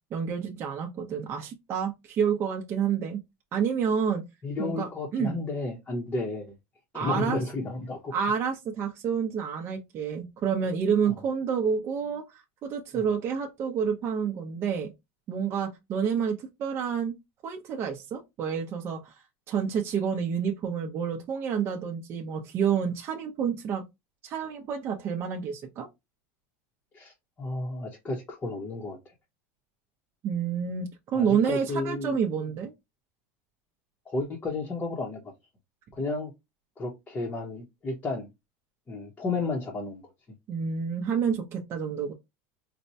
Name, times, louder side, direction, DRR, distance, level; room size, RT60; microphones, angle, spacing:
voice 1, 0.1-3.2 3.5-4.2 4.6-5.4 6.9-7.4 8.1-14.9 15.3-17.2 17.4-19.1 19.5-23.8 24.2-25.9 30.2-32.7 40.5-42.1, right 7 dB, 30° right, 0.6 m, -29 dB
voice 2, 4.4-6.5 6.9-8.1 26.9-27.1 27.4-29.1 31.1-32.2 34.1-35.2 36.0-36.3 36.8-38.3 38.9-40.0, left 3 dB, 20° left, 0.8 m, -32 dB
4.2 x 2.2 x 2.7 m
supercardioid pair, 150°, 8 cm